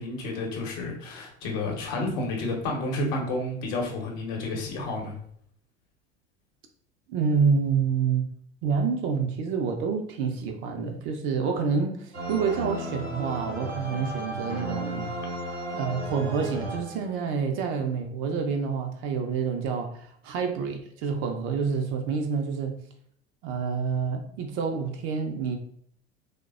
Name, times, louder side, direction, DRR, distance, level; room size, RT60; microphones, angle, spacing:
voice 1, 0.0-5.1, left 2 dB, 50° left, 1 dB, 0.8 m, -30 dB
voice 2, 7.1-8.3 8.6-15.1 15.7-22.8 23.4-25.6, right 5 dB, 40° right, 4 dB, 0.4 m, -28 dB
sound 1, 12.1-17.4, right 1 dB, 85° right, 0.7 m, -34 dB
3.2 x 2.1 x 2.3 m, 0.63 s
figure-of-eight pair, 70°, 33 cm